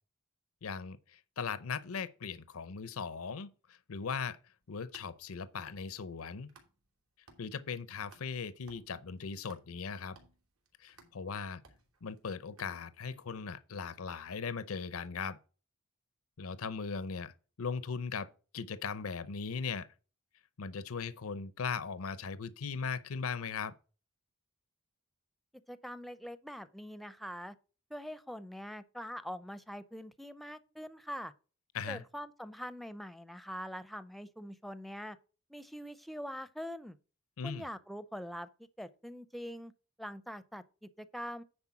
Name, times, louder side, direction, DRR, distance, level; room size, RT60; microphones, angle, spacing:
voice 1, 0.6-4.4 4.7-6.5 7.4-10.2 10.8-11.6 12.0-15.4 16.4-19.9 20.6-23.7 31.7-32.0 37.4-37.6, left 5 dB, 80° left, 0.6 m, -39 dB
sound 1, 4.6-7.0 7.3-13.2, right 3 dB, 80° right, 2.9 m, -62 dB
voice 2, 25.7-27.6 27.9-31.3 31.9-35.2 35.5-37.0 37.4-39.7 40.0-41.4, equal, ahead, 0.5 m, -43 dB
9.8 x 4.4 x 5.8 m
head